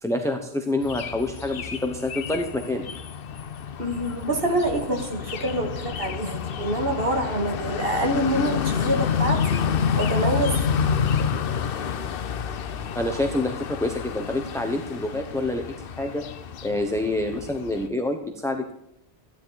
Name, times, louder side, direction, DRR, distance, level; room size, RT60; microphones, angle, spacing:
voice 1, 0.0-2.9 12.9-16.2 16.6-18.7, left 2 dB, 5° left, 4 dB, 0.9 m, -27 dB
sound 1, 0.8-17.9, left 7 dB, 65° left, 0.9 m, -29 dB
voice 2, 3.8-9.7 10.0-10.6, right 1 dB, 60° right, 3 dB, 2.2 m, -26 dB
14.5 x 9.8 x 4.0 m, 0.79 s
omnidirectional pair, 1.1 m